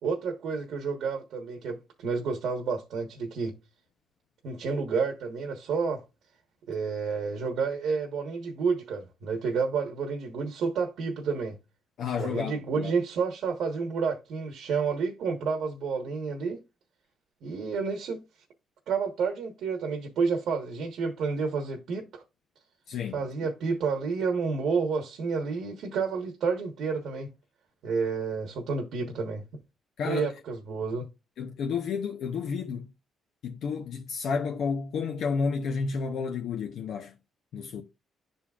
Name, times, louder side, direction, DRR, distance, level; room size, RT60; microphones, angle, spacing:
voice 1, 0.0-3.5 4.4-6.0 6.7-11.6 12.2-16.6 17.4-18.2 18.9-22.2 23.1-27.3 27.8-29.4 30.0-31.1, right 5 dB, 75° right, 1.2 m, -30 dB
voice 2, 12.0-12.9 22.9-23.5 30.0-30.3 31.4-32.9 33.4-37.1 37.5-37.8, left 5 dB, 70° left, 0.7 m, -31 dB
11.5 x 4.0 x 2.4 m
cardioid pair, 90°, 0 cm